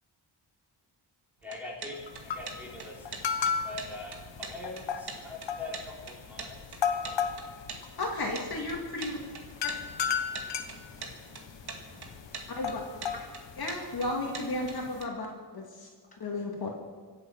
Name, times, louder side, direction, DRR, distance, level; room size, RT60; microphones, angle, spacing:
voice 1, 1.4-3.1 3.4-6.6 6.9-7.2, left 2 dB, 5° right, -4 dB, 4.2 m, -43 dB
sound 1, 1.4-15.0, right 4 dB, 60° right, 2.3 m, -43 dB
sound 2, 1.9-15.1, left 7 dB, 85° left, 1.3 m, -36 dB
voice 2, 8.0-9.2 12.6-12.8 13.6-15.3 15.5-15.6 16.2-16.7, left 2 dB, 55° left, -1 dB, 2.5 m, -33 dB
voice 3, 9.0-13.5, equal, 20° left, -2 dB, 5.4 m, -55 dB
25.0 x 8.4 x 6.0 m, 1.5 s
wide cardioid pair, 115°, 43 cm